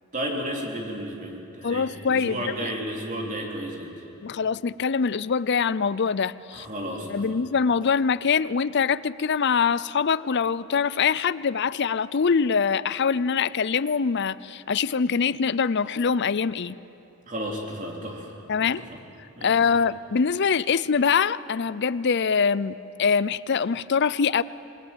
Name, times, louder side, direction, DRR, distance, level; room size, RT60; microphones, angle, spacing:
voice 1, 0.1-3.9 6.5-7.4 17.3-18.3 18.6-18.7 19.4-19.5, equal, 35° right, 0 dB, 3.7 m, -32 dB
voice 2, 1.6-2.7 4.2-6.7 7.1-16.8 18.5-18.8 19.4-24.4, left 6 dB, 50° left, 18 dB, 0.5 m, -24 dB
27.0 x 20.0 x 9.2 m, 2.8 s
head